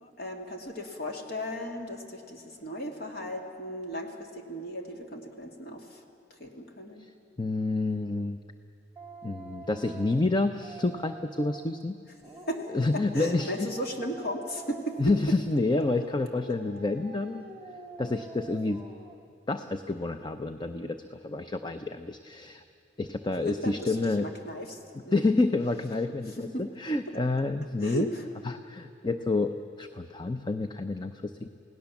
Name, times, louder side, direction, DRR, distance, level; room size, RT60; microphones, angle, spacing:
voice 1, 0.0-6.0 6.4-7.1 12.5-12.6 12.9-15.0 23.5-24.8 25.0-25.3 26.5-26.6 27.8-28.2, equal, 55° left, 2 dB, 2.5 m, -36 dB
voice 2, 7.4-8.4 9.2-12.0 12.7-13.7 15.0-17.5 18.0-18.8 19.5-22.6 23.0-24.3 24.9-28.1 28.4-31.5, left 2 dB, 25° left, 8 dB, 0.6 m, -29 dB
Dog, 9.0-11.8 12.2-15.3 15.7-19.3, right 1 dB, 10° right, 2.0 m, -46 dB
28.5 x 17.5 x 7.2 m, 2.7 s
head